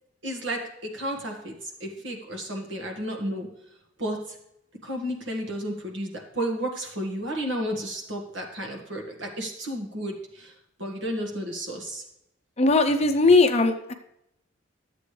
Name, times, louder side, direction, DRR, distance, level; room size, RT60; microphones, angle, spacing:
voice 1, 0.2-3.5 4.0-4.4 4.8-10.5 10.8-12.0, right 1 dB, 70° right, 2 dB, 1.7 m, -32 dB
voice 2, 12.6-13.9, left 3 dB, 30° left, 7 dB, 0.6 m, -19 dB
11.5 x 7.7 x 3.2 m, 0.81 s
head